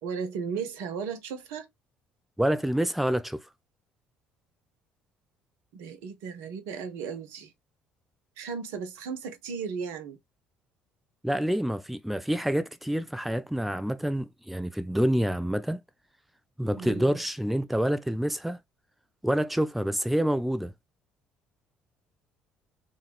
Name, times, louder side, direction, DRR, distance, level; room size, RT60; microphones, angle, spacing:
voice 1, 0.0-1.7 5.7-7.5 8.4-10.2 16.8-17.2, right 6 dB, 60° right, 0.8 m, -35 dB
voice 2, 2.4-3.4 11.2-15.8 16.6-18.6 19.2-20.7, equal, ahead, 0.4 m, -27 dB
5.2 x 2.4 x 3.3 m
figure-of-eight pair, 50°, 5 cm